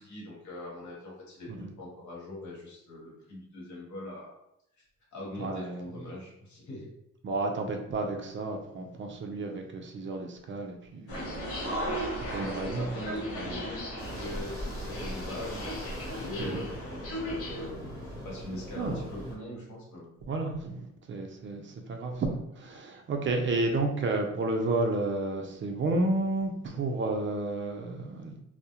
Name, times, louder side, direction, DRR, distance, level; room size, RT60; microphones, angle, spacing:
voice 1, 0.0-1.5 1.8-4.3 5.1-6.9 12.3-15.7 16.1-20.1, left 1 dB, 70° left, -4 dB, 1.1 m, -42 dB
voice 2, 5.4-5.9 7.2-11.4 12.2-12.9 13.4-13.6 16.4-16.6 18.8-19.0 20.3-28.4, right 2 dB, 40° right, 3 dB, 0.4 m, -31 dB
sound 1, 11.1-17.7, equal, 50° left, 0.8 m, -36 dB
sound 2, 14.0-19.4, equal, 10° left, 0.9 m, -42 dB
2.3 x 2.0 x 2.8 m, 0.77 s
cardioid pair, 90°, 30 cm